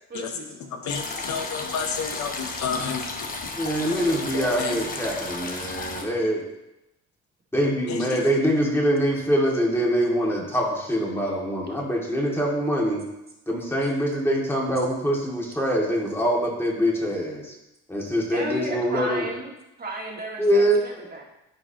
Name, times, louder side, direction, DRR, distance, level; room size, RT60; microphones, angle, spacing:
voice 1, 0.1-0.5 0.8-0.9 18.3-19.5 19.8-21.2, right 1 dB, 30° right, -2 dB, 2.0 m, -33 dB
voice 2, 0.7-3.6 3.9-4.0 4.3-4.8 7.9-8.2, left 6 dB, 65° left, 6 dB, 0.9 m, -31 dB
sound 1, 0.9-6.0, left 3 dB, 30° left, 1.1 m, -34 dB
voice 3, 3.6-6.4 7.5-13.0 13.5-17.5 17.9-19.3 20.4-20.8, equal, 10° left, -2 dB, 2.2 m, -24 dB
13.5 x 4.9 x 2.9 m, 0.92 s
cardioid pair, 90°, 30 cm